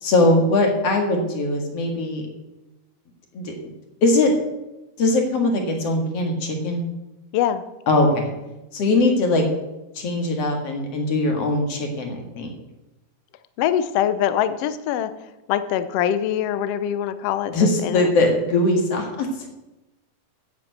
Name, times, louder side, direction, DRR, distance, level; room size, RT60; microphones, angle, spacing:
voice 1, 0.0-2.2 3.3-3.5 4.0-4.3 5.0-6.8 7.9-8.3 8.7-9.4 10.0-12.5 17.5-19.3, left 2 dB, 50° left, 3 dB, 2.7 m, -20 dB
voice 2, 7.3-7.6 13.6-15.1 15.5-18.1, left 10 dB, 75° left, 12 dB, 1.4 m, -23 dB
9.5 x 8.3 x 8.0 m, 0.98 s
omnidirectional pair, 3.7 m